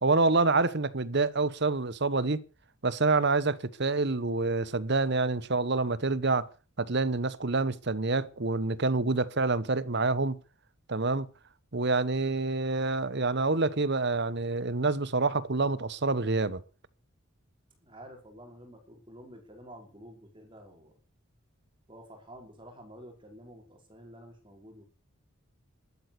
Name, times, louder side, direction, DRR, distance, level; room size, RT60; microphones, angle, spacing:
voice 1, 0.0-2.4 2.8-6.5 6.8-10.4 10.9-11.2 11.7-16.6, right 3 dB, 50° right, 1.0 m, -27 dB
voice 2, 17.8-21.0 21.9-24.8, equal, 20° right, 5.1 m, -50 dB
12.5 x 12.5 x 6.8 m
head